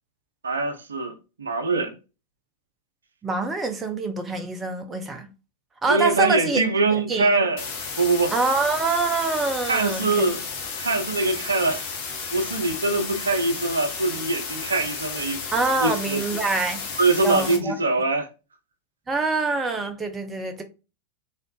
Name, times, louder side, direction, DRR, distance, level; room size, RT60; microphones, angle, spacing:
voice 1, 0.4-1.1 1.4-1.9 5.9-7.6 8.0-8.3 9.6-10.4 10.8-11.9 12.3-15.4 15.8-16.2 16.5-16.6 17.0-18.3, right 3 dB, 70° right, 0.6 m, -23 dB
voice 2, 3.2-5.3 5.8-6.6 6.9-7.3 8.3-10.3 15.5-16.8 17.2-17.8 19.1-20.6, right 3 dB, 15° right, 0.6 m, -25 dB
sound 1, 7.6-17.6, left 5 dB, 45° left, 1.0 m, -33 dB
3.7 x 3.2 x 2.3 m
figure-of-eight pair, 90°, 0 cm